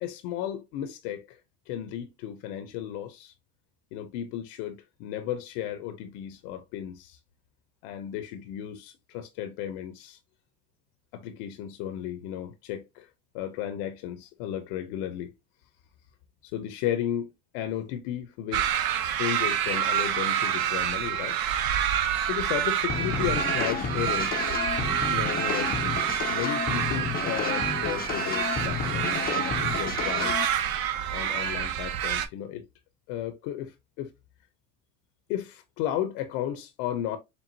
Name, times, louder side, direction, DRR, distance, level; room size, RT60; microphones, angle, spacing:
voice 1, 0.0-1.4 1.7-3.3 3.9-7.2 7.8-10.2 11.1-13.1 13.3-15.3 16.4-21.4 22.3-24.4 25.1-30.5 31.1-32.7 33.1-34.1 35.3-37.2, left 11 dB, 85° left, 0.7 m, -34 dB
sound 1, 18.5-32.3, right 9 dB, 60° right, 0.8 m, -28 dB
sound 2, 22.9-30.5, left 6 dB, 20° left, 0.5 m, -31 dB
4.5 x 3.4 x 2.6 m
supercardioid pair, 90°, 42 cm